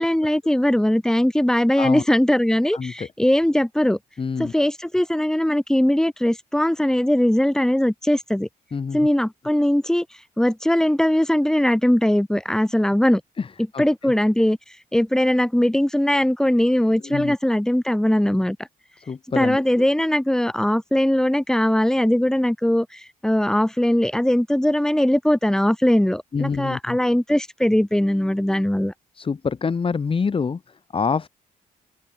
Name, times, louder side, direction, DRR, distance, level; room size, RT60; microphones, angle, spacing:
voice 1, 0.0-4.0 4.4-8.5 8.9-10.1 10.4-13.2 13.8-14.6 14.9-18.6 19.4-28.9, left 1 dB, 5° left, 2.4 m, -20 dB
voice 2, 2.7-3.1 4.2-4.5 8.7-9.1 13.4-14.1 17.0-17.4 19.0-19.8 26.3-27.0 29.1-31.3, left 5 dB, 35° left, 3.5 m, -26 dB
cardioid pair, 125°, 16 cm